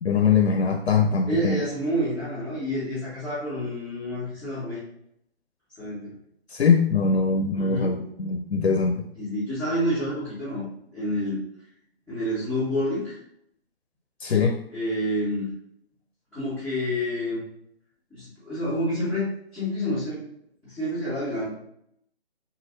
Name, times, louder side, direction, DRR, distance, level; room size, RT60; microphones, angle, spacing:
voice 1, 0.0-1.6 6.5-9.0 14.2-14.6, left 5 dB, 85° left, 4 dB, 0.6 m, -22 dB
voice 2, 1.3-4.8 5.8-6.2 7.5-8.0 9.2-10.7 10.9-11.4 12.1-13.2 14.7-15.5 16.3-17.4 18.1-20.2 20.6-21.5, equal, ahead, -17 dB, 1.9 m, -28 dB
7.2 x 2.7 x 2.7 m, 0.74 s
figure-of-eight pair, 145°, 32 cm